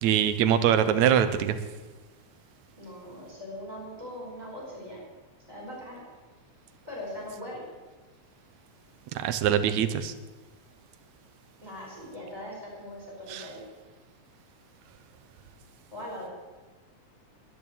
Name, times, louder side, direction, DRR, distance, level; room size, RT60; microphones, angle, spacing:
voice 1, 0.0-1.6 9.2-10.1 13.3-13.5, right 9 dB, 75° right, 10 dB, 2.1 m, -23 dB
voice 2, 2.8-5.0 5.5-6.1 6.8-7.6 11.6-13.6 15.9-16.3, left 1 dB, 10° right, -3 dB, 5.3 m, -40 dB
11.0 x 11.0 x 8.6 m, 1.2 s
omnidirectional pair, 3.5 m